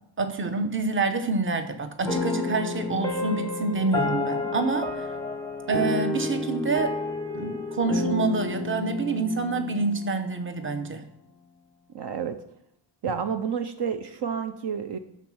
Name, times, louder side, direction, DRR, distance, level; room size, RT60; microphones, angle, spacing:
voice 1, 0.2-5.1 5.7-6.9 7.3-11.0, right 3 dB, 25° right, 7 dB, 0.8 m, -27 dB
sound 1, 2.0-10.6, left 3 dB, 5° left, 0.7 m, -30 dB
voice 2, 11.9-12.4 13.0-15.0, right 7 dB, 60° right, 8 dB, 0.7 m, -30 dB
11.5 x 4.1 x 6.1 m, 0.73 s
wide cardioid pair, 175°, 45 cm